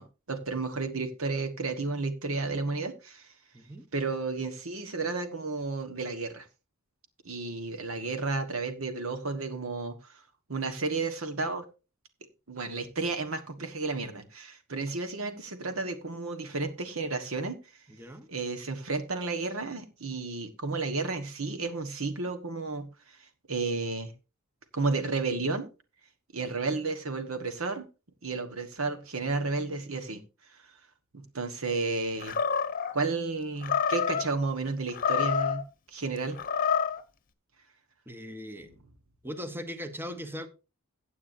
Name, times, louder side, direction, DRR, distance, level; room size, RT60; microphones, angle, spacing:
voice 1, 0.0-3.2 3.9-6.4 7.2-9.9 10.5-11.6 12.5-17.6 18.3-22.9 23.5-24.1 24.7-25.7 26.3-27.9 28.2-30.2 31.1-32.4 32.9-35.6 35.9-36.4, right 3 dB, 80° right, 8 dB, 1.4 m, -32 dB
voice 2, 3.5-3.9 17.9-18.3 38.1-38.8 39.2-40.5, equal, 10° right, 9 dB, 0.9 m, -39 dB
Animal, 32.2-32.9 33.6-34.3 34.9-35.6 36.3-37.0, left 7 dB, 45° left, 1.0 m, -27 dB
15.0 x 8.4 x 2.7 m, 0.30 s
head